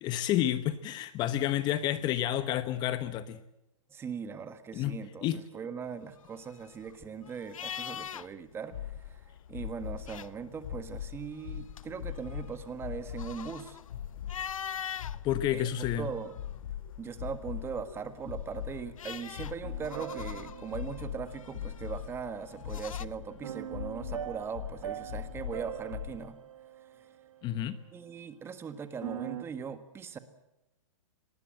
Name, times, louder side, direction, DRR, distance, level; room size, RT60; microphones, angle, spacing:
voice 1, 0.0-3.4 4.7-5.4 15.2-16.1 27.4-27.8, left 12 dB, 25° left, 12 dB, 1.0 m, -30 dB
voice 2, 3.9-9.2 9.5-13.8 15.5-15.7 16.0-16.3 17.0-26.4 27.0-27.1 27.9-30.2, right 6 dB, 15° right, 11 dB, 1.6 m, -40 dB
sound 1, 6.0-8.5 8.8-9.0 9.8-10.7 11.2-15.2 15.7-16.7 18.2-23.1, left 8 dB, 85° left, 0.8 m, -43 dB
sound 2, 8.7-26.2, left 10 dB, 60° left, 4.0 m, -41 dB
sound 3, 19.6-22.4 23.4-27.8 28.8-29.4, right 10 dB, 75° right, 1.1 m, -43 dB
25.0 x 20.0 x 7.7 m, 0.90 s
hypercardioid pair, 145°, 17 cm